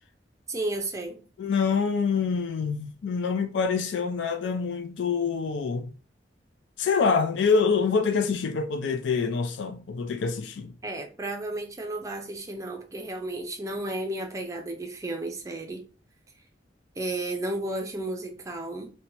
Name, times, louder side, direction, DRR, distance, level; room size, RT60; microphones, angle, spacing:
voice 1, 0.5-1.3 10.8-15.9 17.0-18.9, right 2 dB, 20° right, 0.4 m, -33 dB
voice 2, 1.4-5.9 6.8-10.7, left 5 dB, 85° left, 0.4 m, -26 dB
2.8 x 2.2 x 2.9 m
head